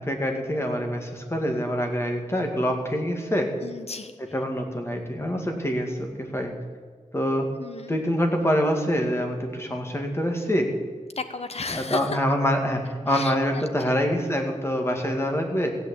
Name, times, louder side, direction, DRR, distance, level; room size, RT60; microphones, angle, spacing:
voice 1, 0.0-3.5 4.2-6.5 7.1-7.5 7.9-10.7 11.7-15.8, equal, 20° left, 3 dB, 2.2 m, -25 dB
voice 2, 3.6-4.1 7.6-8.0 11.2-12.2 13.1-14.0, left 3 dB, 55° left, 9 dB, 1.1 m, -34 dB
15.5 x 8.3 x 8.5 m, 1.5 s
wide cardioid pair, 100°, 13 cm